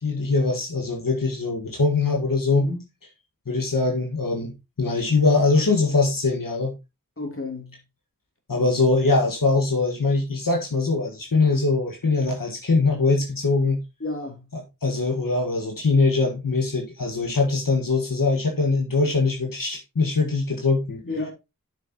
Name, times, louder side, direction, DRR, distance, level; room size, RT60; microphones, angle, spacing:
voice 1, 0.0-2.7 3.5-6.7 8.5-13.8 14.5-21.0, left 3 dB, 85° left, 1.7 m, -22 dB
voice 2, 7.2-7.8 14.0-14.5 21.0-21.3, left 2 dB, 40° left, 3.2 m, -31 dB
10.5 x 6.7 x 2.9 m
wide cardioid pair, 45°, 33 cm